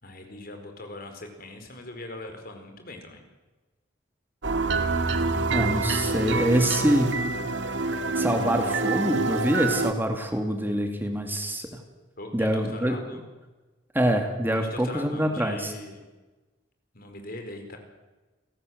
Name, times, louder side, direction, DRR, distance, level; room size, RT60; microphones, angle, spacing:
voice 1, 0.0-3.2 12.2-13.2 14.5-16.0 16.9-17.8, left 2 dB, 55° left, 5 dB, 4.8 m, -41 dB
sound 1, 4.4-9.9, right 3 dB, 75° right, 2.0 m, -26 dB
voice 2, 5.5-7.1 8.2-11.7 12.3-13.2 13.9-15.7, equal, 10° right, 5 dB, 2.4 m, -25 dB
29.0 x 17.5 x 8.0 m, 1.2 s
head